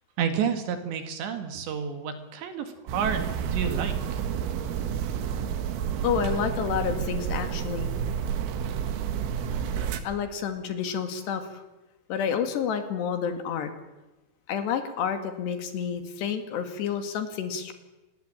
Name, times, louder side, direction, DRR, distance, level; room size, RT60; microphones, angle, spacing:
voice 1, 0.2-2.7 2.9-4.2, right 7 dB, 65° right, 7 dB, 4.0 m, -30 dB
sound 1, 2.9-10.0, right 8 dB, 90° right, 4.3 m, -30 dB
voice 2, 6.0-7.9 10.0-11.6 12.1-13.7 14.5-17.7, left 7 dB, 65° left, 7 dB, 4.0 m, -29 dB
26.0 x 20.5 x 8.9 m, 1.1 s
omnidirectional pair, 5.7 m